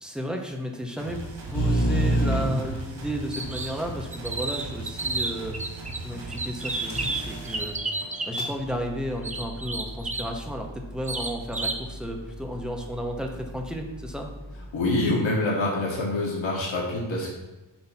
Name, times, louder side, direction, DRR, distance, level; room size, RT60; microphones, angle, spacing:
voice 1, 0.0-5.6 6.0-14.3, equal, ahead, 1 dB, 0.8 m, -33 dB
sound 1, 1.0-7.7, right 2 dB, 90° right, 1.9 m, -39 dB
sound 2, 1.5-3.6 6.1-6.2 6.9-14.7, right 1 dB, 60° left, 1.5 m, -32 dB
sound 3, 3.3-3.8 4.1-6.0 6.3-8.5 9.2-10.3 11.0-11.8, right 3 dB, 15° right, 0.4 m, -31 dB
voice 2, 14.7-17.3, left 2 dB, 75° left, -4 dB, 1.6 m, -26 dB
7.8 x 2.9 x 5.7 m, 1.1 s
wide cardioid pair, 150°, 46 cm